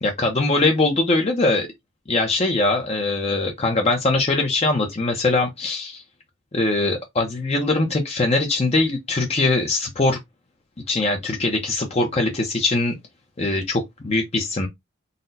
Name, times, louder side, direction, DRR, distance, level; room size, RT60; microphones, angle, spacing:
voice 1, 0.0-1.7 2.1-6.0 6.5-10.2 10.9-12.9 13.4-14.7, left 2 dB, 30° left, 0.6 m, -21 dB
4.0 x 2.1 x 3.9 m
head